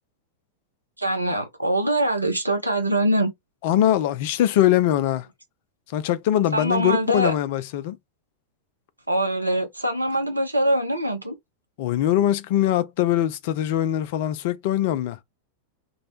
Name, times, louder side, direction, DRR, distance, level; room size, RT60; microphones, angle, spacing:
voice 1, 1.0-3.3 6.5-7.3 9.1-11.3, right 1 dB, 85° right, 0.5 m, -23 dB
voice 2, 3.6-5.3 5.9-8.0 11.8-15.2, left 12 dB, 50° left, 0.4 m, -22 dB
2.2 x 2.0 x 2.9 m
figure-of-eight pair, 90°, 0 cm